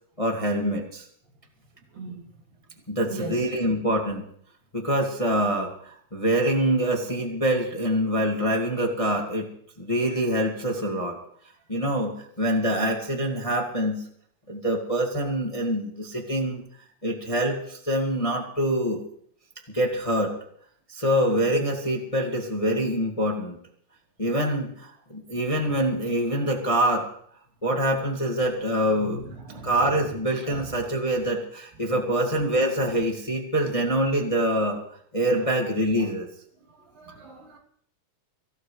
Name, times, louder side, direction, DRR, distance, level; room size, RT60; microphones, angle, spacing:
voice 1, 0.2-1.0 2.9-4.2 4.7-9.5 9.8-11.2 11.7-14.0 14.5-16.6 17.0-19.0 19.7-20.3 20.9-23.6 24.2-27.1 27.6-29.2 29.6-34.8 35.1-36.3, right 1 dB, 15° left, 1.4 m, -25 dB
voice 2, 1.9-2.3 3.1-3.4 29.0-30.0 30.5-30.7 36.8-37.6, right 2 dB, 80° right, 4.6 m, -39 dB
24.0 x 16.0 x 3.3 m
omnidirectional pair, 3.9 m